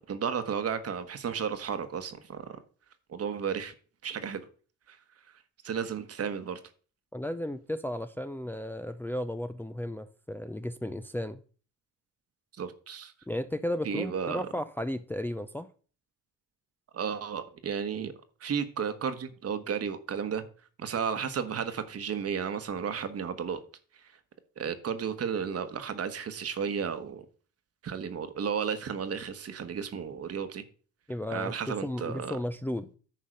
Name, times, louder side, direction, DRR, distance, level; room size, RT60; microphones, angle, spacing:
voice 1, 0.1-2.6 3.1-3.7 4.0-4.5 4.9-5.0 5.6-6.6 12.6-13.1 13.8-14.5 16.9-18.1 18.4-20.4 20.8-23.6 24.0-24.1 24.6-27.2 27.8-30.6 31.3-32.4, right 7 dB, 50° right, 1.3 m, -33 dB
voice 2, 7.1-11.4 13.3-15.7 31.1-32.9, left 1 dB, 5° left, 0.5 m, -34 dB
10.0 x 4.0 x 6.4 m
cardioid pair, 90°, 30 cm